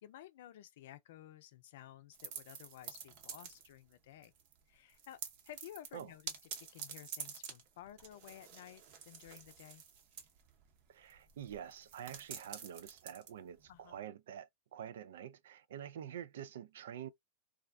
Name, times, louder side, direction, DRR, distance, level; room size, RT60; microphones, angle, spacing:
voice 1, 0.0-4.3 4.7-5.2 5.4-9.8 13.7-14.0, left 12 dB, 65° left, 0.4 m, -54 dB
sound 1, 2.1-3.9 4.2-4.6 4.9-14.0, right 7 dB, 55° right, 0.8 m, -49 dB
voice 2, 10.9-17.1, right 9 dB, 75° right, 0.3 m, -47 dB
2.4 x 2.2 x 2.4 m
hypercardioid pair, 110°, 0 cm